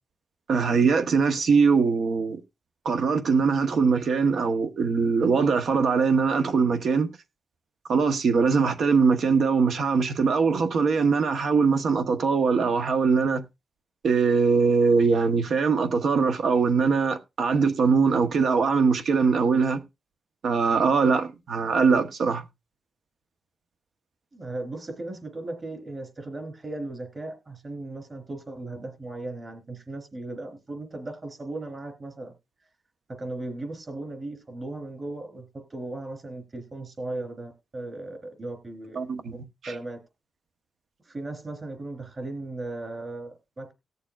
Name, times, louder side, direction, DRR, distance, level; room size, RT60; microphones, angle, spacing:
voice 1, 0.5-2.4 2.8-7.1 7.9-13.4 14.0-19.8 20.4-22.4 39.0-39.3, right 5 dB, 75° right, 1.0 m, -22 dB
voice 2, 24.3-32.3 33.1-39.0 39.3-39.4 39.7-40.0 41.0-43.7, right 2 dB, 35° right, 3.2 m, -37 dB
19.0 x 6.8 x 2.4 m
wide cardioid pair, 115°, 0 cm